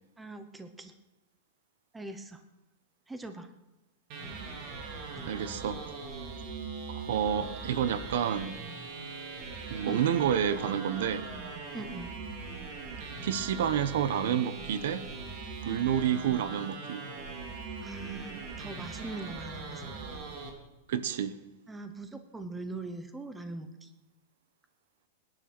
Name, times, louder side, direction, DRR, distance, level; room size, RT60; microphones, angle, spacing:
voice 1, 0.2-0.9 1.9-2.4 3.1-3.5 5.1-5.3 9.8-10.0 11.7-12.2 17.8-19.8 21.7-23.9, right 2 dB, 5° right, 0.9 m, -41 dB
sound 1, 4.1-20.5, right 4 dB, 40° right, 3.0 m, -41 dB
voice 2, 5.3-5.8 6.9-8.6 9.7-11.3 13.2-15.1 15.6-17.0 20.9-21.4, right 9 dB, 65° right, 1.1 m, -29 dB
20.0 x 11.0 x 6.1 m
supercardioid pair, 165°, 0 cm